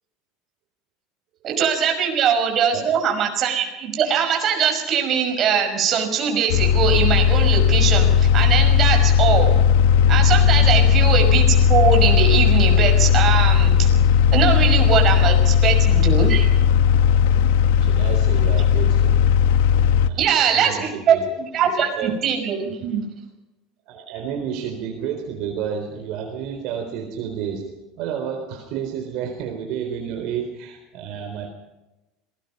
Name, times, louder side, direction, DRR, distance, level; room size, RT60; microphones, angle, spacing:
voice 1, 1.4-9.5 10.1-13.9 14.3-16.4 20.2-23.0, right 7 dB, 35° right, 3 dB, 5.8 m, -21 dB
sound 1, 6.5-20.1, left 7 dB, 80° left, 1.2 m, -16 dB
voice 2, 17.8-19.3 20.1-21.2 22.0-22.1 23.9-31.5, right 8 dB, 55° right, 3 dB, 3.9 m, -30 dB
27.0 x 19.5 x 5.5 m, 1.0 s
cardioid pair, 145°, 0 cm